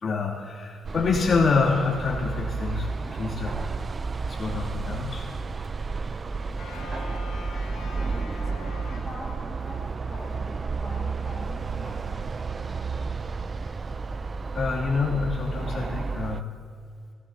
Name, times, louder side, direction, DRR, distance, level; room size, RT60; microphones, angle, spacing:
voice 1, 0.0-3.6 4.3-5.3 14.5-16.5, left 4 dB, 50° left, -5 dB, 2.9 m, -26 dB
sound 1, 0.8-16.4, right 4 dB, 35° right, 0.4 m, -32 dB
sound 2, 6.6-9.8, left 4 dB, 85° left, 2.8 m, -43 dB
voice 2, 6.7-7.2 7.9-12.2, left 2 dB, 15° left, -7 dB, 4.4 m, -44 dB
18.0 x 17.0 x 2.9 m, 2.1 s
cardioid pair, 90°, 0 cm